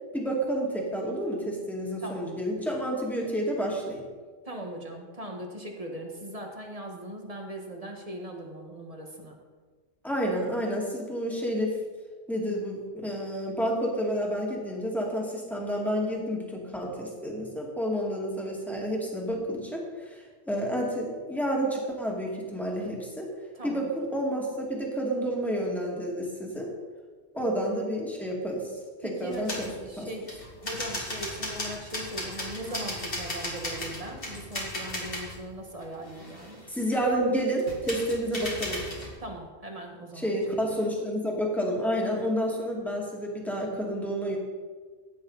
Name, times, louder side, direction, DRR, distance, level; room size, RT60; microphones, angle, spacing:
voice 1, 0.1-4.0 10.0-11.8 12.3-23.3 23.6-26.7 27.3-29.7 30.0-30.1 36.7-38.8 40.1-44.4, equal, ahead, -2 dB, 2.4 m, -30 dB
voice 2, 4.5-9.4 23.5-23.9 27.3-27.6 29.0-30.3 30.6-36.6 39.2-40.8, right 1 dB, 30° right, 1 dB, 1.7 m, -40 dB
sound 1, 29.3-29.7 30.3-35.4 35.8-37.1 37.6-39.2, left 1 dB, 55° left, 2.7 m, -36 dB
15.0 x 9.5 x 4.1 m, 1.4 s
omnidirectional pair, 1.1 m